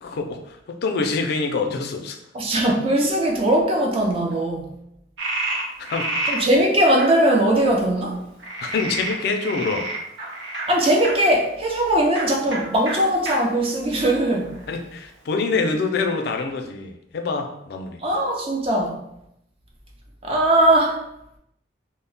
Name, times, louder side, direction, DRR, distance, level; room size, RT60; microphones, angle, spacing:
voice 1, 0.0-2.2 5.5-6.4 8.6-9.9 14.7-18.0, left 4 dB, 55° left, 4 dB, 0.3 m, -26 dB
voice 2, 2.3-4.7 6.3-8.2 10.7-14.5 18.0-19.0 20.2-21.0, right 1 dB, 30° right, 0 dB, 0.4 m, -20 dB
Frog, 5.2-6.4 7.0-7.1 8.4-11.1 12.1-12.3 12.5-12.6 12.9-13.0 13.3-13.4 14.0-14.7, right 2 dB, 90° right, 0.6 m, -28 dB
2.1 x 2.0 x 3.8 m, 0.81 s
head